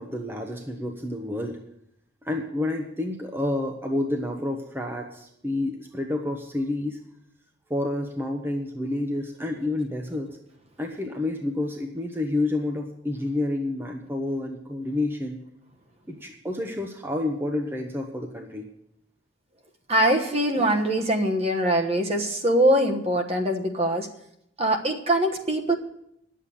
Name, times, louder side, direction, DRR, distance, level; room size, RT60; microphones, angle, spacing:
voice 1, 0.0-1.6 2.2-7.0 7.7-10.4 10.8-15.4 16.1-18.7, left 2 dB, 10° right, 2 dB, 0.9 m, -29 dB
voice 2, 19.9-24.1 24.6-25.7, right 1 dB, 35° right, 4 dB, 1.2 m, -23 dB
10.5 x 7.5 x 8.4 m, 0.77 s
head